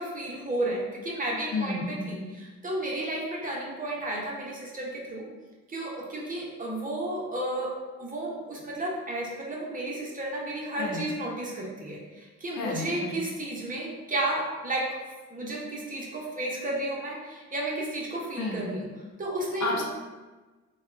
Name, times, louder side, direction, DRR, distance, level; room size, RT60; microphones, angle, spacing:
voice 1, 0.0-5.2 5.7-7.7 8.0-14.8 15.3-18.9 19.2-19.8, right 1 dB, 30° right, -3 dB, 0.7 m, -32 dB
voice 2, 1.5-2.1 10.8-11.0 12.6-13.2 18.4-18.6 19.6-19.8, left 3 dB, 65° left, -1 dB, 0.7 m, -31 dB
3.5 x 2.2 x 2.4 m, 1.2 s
cardioid pair, 90°, 30 cm